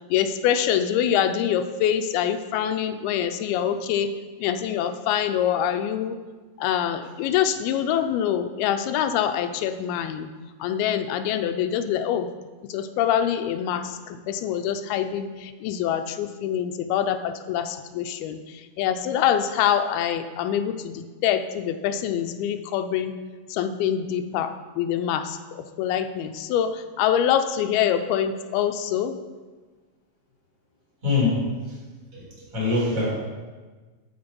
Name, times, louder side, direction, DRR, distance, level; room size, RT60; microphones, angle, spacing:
voice 1, 0.1-4.1 4.4-6.2 6.6-10.3 10.6-12.3 12.7-23.1 23.5-29.2, left 9 dB, 90° left, 8 dB, 2.6 m, -25 dB
voice 2, 31.0-31.4 31.7-31.8 32.1-33.1, left 3 dB, 50° right, -6 dB, 5.3 m, -24 dB
12.5 x 6.4 x 5.2 m, 1.3 s
omnidirectional pair, 4.3 m